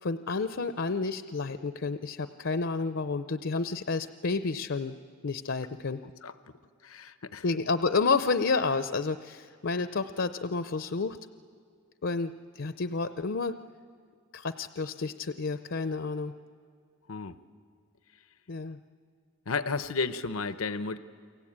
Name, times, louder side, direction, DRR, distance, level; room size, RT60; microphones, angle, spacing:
voice 1, 0.0-5.0 5.2-6.0 7.4-11.2 12.0-13.6 14.3-16.3 18.5-18.8, left 4 dB, 60° left, 11 dB, 0.6 m, -30 dB
voice 2, 6.8-7.4 17.1-17.4 19.5-21.0, left 4 dB, 90° left, 12 dB, 0.8 m, -32 dB
29.5 x 23.5 x 8.8 m, 2.1 s
head